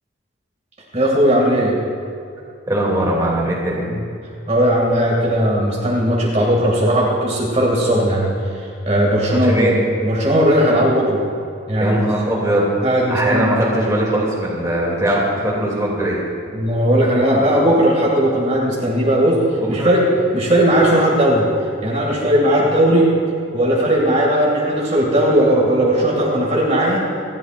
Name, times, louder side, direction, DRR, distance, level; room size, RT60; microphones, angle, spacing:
voice 1, 0.9-1.7 3.9-4.0 4.5-9.7 10.0-11.2 11.7-12.0 12.8-13.6 16.5-19.4 19.7-20.0 20.3-21.5 21.8-23.1 23.5-27.1, equal, 35° right, -4 dB, 2.5 m, -17 dB
voice 2, 2.7-3.9 9.3-9.7 11.8-12.7 13.1-16.2 19.6-19.9, right 1 dB, 15° right, -4 dB, 2.8 m, -20 dB
28.5 x 12.5 x 2.6 m, 2.5 s
head